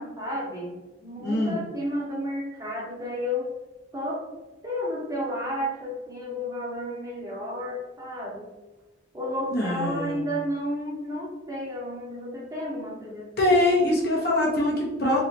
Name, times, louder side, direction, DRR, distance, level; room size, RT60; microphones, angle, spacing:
voice 1, 0.0-3.5 3.9-4.2 4.6-8.5 9.1-13.6, equal, 20° right, -4 dB, 0.9 m, -32 dB
voice 2, 1.2-1.6 9.5-10.2 13.4-15.2, left 1 dB, 55° left, -4 dB, 1.2 m, -23 dB
3.8 x 3.2 x 2.9 m, 1.1 s
head